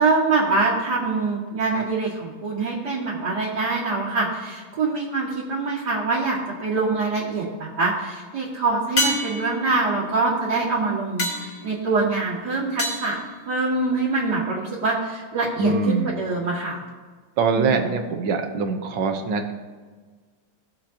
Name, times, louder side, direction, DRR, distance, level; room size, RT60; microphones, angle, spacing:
voice 1, 0.0-13.2 13.5-16.8 17.5-18.0, right 3 dB, 60° right, -7 dB, 2.5 m, -24 dB
sound 1, 6.6-7.2 9.0-14.1 18.6-18.7, left 1 dB, 45° left, 2.1 m, -30 dB
voice 2, 15.6-16.2 17.4-19.5, right 4 dB, 80° right, 4 dB, 1.8 m, -23 dB
19.5 x 7.3 x 2.9 m, 1.4 s
omnidirectional pair, 2.1 m